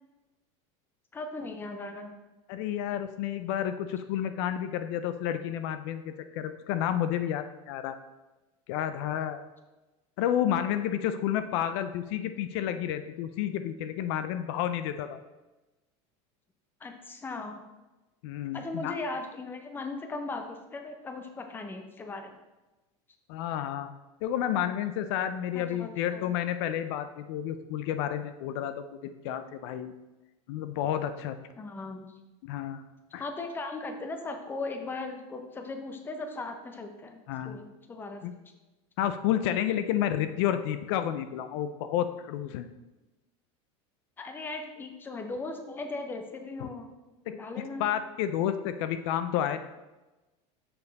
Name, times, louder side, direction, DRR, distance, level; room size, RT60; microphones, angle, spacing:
voice 1, 1.1-2.1 16.8-17.6 18.5-22.3 25.5-26.3 31.6-32.0 33.2-38.2 44.2-46.9 47.3-47.9, left 3 dB, 15° left, 5 dB, 0.7 m, -38 dB
voice 2, 2.5-8.0 8.7-9.4 10.2-15.2 18.2-19.0 23.3-23.9 24.2-30.0 30.5-31.4 32.4-32.8 33.1-33.2 37.3-37.6 38.2-38.3 39.0-42.7 46.6-46.7 47.8-49.6, left 10 dB, 65° left, 10 dB, 0.5 m, -30 dB
7.0 x 5.3 x 4.0 m, 1.1 s
supercardioid pair, 150°, 15 cm